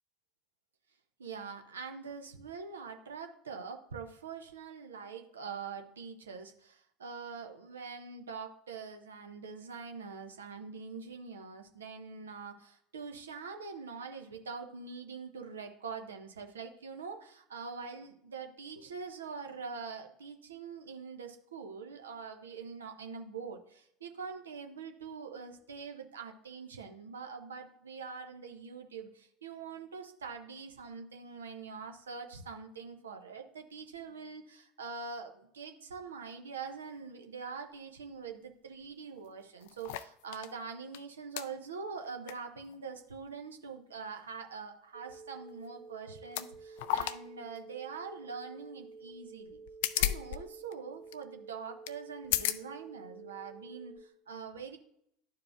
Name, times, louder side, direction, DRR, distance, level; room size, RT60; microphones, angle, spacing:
voice 1, 1.2-49.6 50.0-54.8, right 5 dB, 75° right, 5 dB, 0.7 m, -44 dB
sound 1, 38.8-38.9 39.2-40.5 40.9-41.0 41.4-41.5 42.0-42.4 42.7-42.8 45.5-45.7 46.2-46.5 46.8-47.2 47.5-47.6 49.5-50.4 50.6-50.7 51.1-51.2 51.9-52.0 52.2-52.6 53.3-53.4, left 13 dB, 60° left, 0.3 m, -33 dB
sound 2, 44.9-54.0, right 4 dB, 60° right, 1.8 m, -51 dB
12.0 x 4.8 x 2.4 m, 0.72 s
figure-of-eight pair, 70°, 0 cm